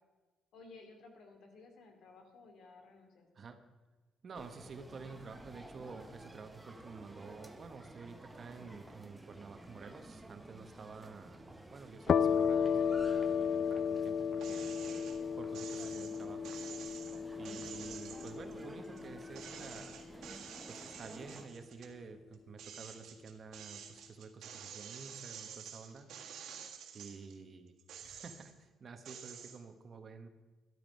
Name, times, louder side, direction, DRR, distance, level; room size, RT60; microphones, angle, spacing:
voice 1, 0.5-3.3, left 3 dB, 65° left, 4 dB, 2.6 m, -56 dB
voice 2, 4.2-14.7 15.4-16.6 17.4-19.9 20.7-26.1 26.9-30.3, right 4 dB, 35° right, 7 dB, 1.1 m, -50 dB
sound 1, 4.3-21.5, right 1 dB, 5° right, 0.9 m, -53 dB
sound 2, 12.1-19.5, left 7 dB, 40° left, 0.3 m, -34 dB
sound 3, 14.4-15.2 15.5-19.0 19.3-21.9 22.3-27.4 27.8-28.6 29.0-29.6, right 8 dB, 70° right, 2.0 m, -49 dB
12.5 x 12.0 x 5.3 m, 1.2 s
cardioid pair, 160°, 0 cm